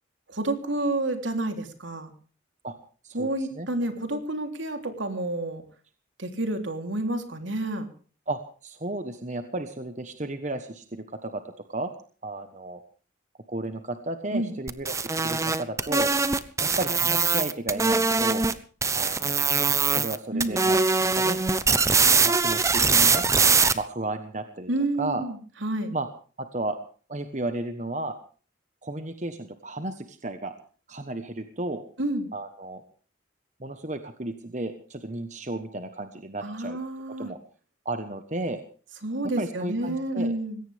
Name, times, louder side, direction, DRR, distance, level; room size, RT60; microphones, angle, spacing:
voice 1, 0.3-2.1 3.1-5.6 6.2-7.9 14.3-14.5 20.3-20.6 24.7-25.9 32.0-32.3 36.4-37.3 39.0-40.6, right 1 dB, 75° right, 5 dB, 3.4 m, -29 dB
voice 2, 3.0-3.7 8.3-11.9 12.2-12.8 13.5-16.1 16.6-18.5 18.9-19.5 19.9-20.8 21.2-21.4 21.7-21.8 22.2-23.2 23.7-24.7 25.0-25.3 25.9-26.1 26.4-26.8 27.1-28.2 28.8-30.5 30.9-31.8 32.3-32.8 33.6-36.8 37.2-37.4 37.8-38.6 39.4-40.3, right 2 dB, 40° right, 8 dB, 1.2 m, -33 dB
sound 1, 14.7-18.5 18.8-20.2 20.4-23.7, right 4 dB, 15° right, 0.8 m, -22 dB
20.5 x 17.5 x 3.5 m, 0.41 s
head